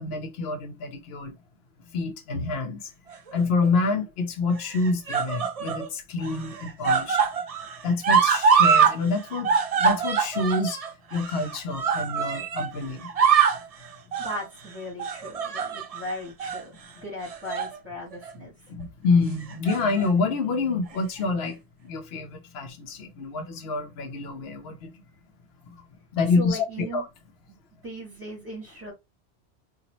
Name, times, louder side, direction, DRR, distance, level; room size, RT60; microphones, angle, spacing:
voice 1, 0.0-1.3 1.9-2.9 3.3-7.3 7.8-10.8 11.1-13.1 18.7-24.9 25.6-25.8 26.1-27.1, left 3 dB, 75° left, 0.9 m, -27 dB
sound 1, 3.1-3.7 4.6-5.9 6.2-9.0 9.2-12.7 13.0-13.7 14.1-14.4 15.0-16.0 16.4-16.6 17.3-17.8 18.1-18.3 19.4-20.1 20.9-21.0, right 6 dB, 50° right, 0.5 m, -24 dB
voice 2, 14.2-16.7 17.0-18.5 26.3-27.0 27.8-28.9, equal, 10° right, 2.2 m, -37 dB
3.9 x 2.4 x 3.0 m
omnidirectional pair, 1.1 m